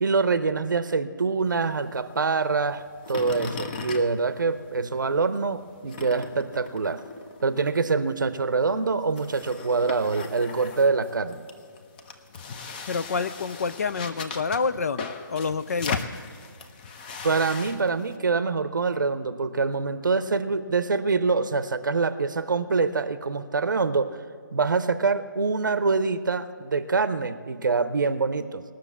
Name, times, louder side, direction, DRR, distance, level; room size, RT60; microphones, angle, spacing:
voice 1, 0.0-7.0 7.4-11.4 17.2-24.2 24.5-28.6, right 4 dB, 65° right, 13 dB, 0.7 m, -25 dB
sound 1, 1.4-5.0 5.3-18.2, left 5 dB, 25° left, 0.8 m, -39 dB
voice 2, 12.9-16.0, left 5 dB, 45° left, 14 dB, 0.4 m, -28 dB
19.0 x 6.5 x 8.2 m, 2.2 s
figure-of-eight pair, 145°, 11 cm